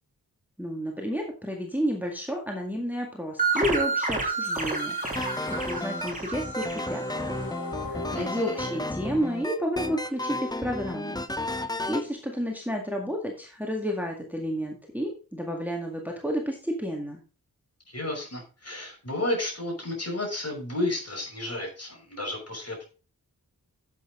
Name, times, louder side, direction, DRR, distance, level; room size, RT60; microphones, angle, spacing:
voice 1, 0.6-7.4 7.8-11.2 11.9-17.2, equal, 5° right, 0 dB, 1.9 m, -31 dB
sound 1, 3.4-7.7, right 4 dB, 20° right, 3.0 m, -30 dB
sound 2, 4.4-10.4, left 3 dB, 70° left, 1.6 m, -42 dB
sound 3, 5.2-12.1, left 1 dB, 10° left, 0.7 m, -33 dB
voice 2, 8.1-8.7 17.9-22.8, left 1 dB, 40° left, 0 dB, 5.8 m, -32 dB
10.5 x 8.5 x 3.8 m, 0.35 s
wide cardioid pair, 90°, 37 cm